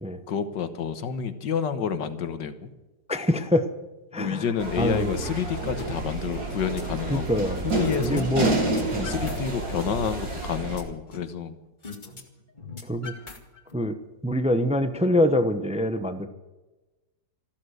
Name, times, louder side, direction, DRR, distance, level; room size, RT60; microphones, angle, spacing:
voice 1, 0.3-2.7 4.1-8.3 9.0-11.6, left 7 dB, 70° left, 11 dB, 1.8 m, -29 dB
voice 2, 3.1-3.7 4.1-4.4 4.8-5.1 7.1-7.6 8.0-8.5 8.9-9.1 12.9-13.1 13.7-13.9 14.2-16.3, left 1 dB, 10° right, 9 dB, 0.4 m, -24 dB
sound 1, 4.6-10.8, right 2 dB, 75° right, 4.4 m, -29 dB
sound 2, 5.8-5.9 6.3-7.3 7.8-8.2 8.5-9.4 9.7-11.3 11.8-12.2 12.5-13.8, left 4 dB, 25° left, 2.1 m, -41 dB
14.5 x 13.0 x 6.5 m, 1.1 s
omnidirectional pair, 2.0 m